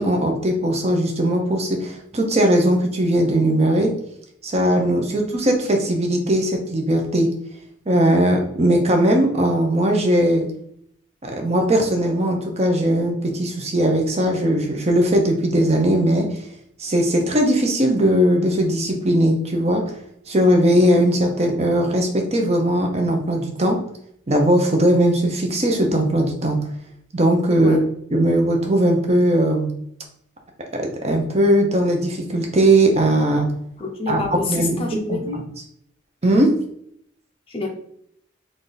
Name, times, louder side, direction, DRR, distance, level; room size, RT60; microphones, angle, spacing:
voice 1, 0.0-3.9 4.4-7.3 7.9-10.5 11.2-16.4 16.8-19.9 20.3-23.8 24.3-26.6 27.1-27.8 28.1-29.7 30.7-33.5 34.1-34.2 34.5-34.8 35.1-35.2 36.2-36.5, right 1 dB, 30° right, 2 dB, 0.7 m, -19 dB
voice 2, 33.8-35.5 37.5-37.7, left 3 dB, 25° left, 0 dB, 0.6 m, -27 dB
3.6 x 2.6 x 3.9 m, 0.68 s
head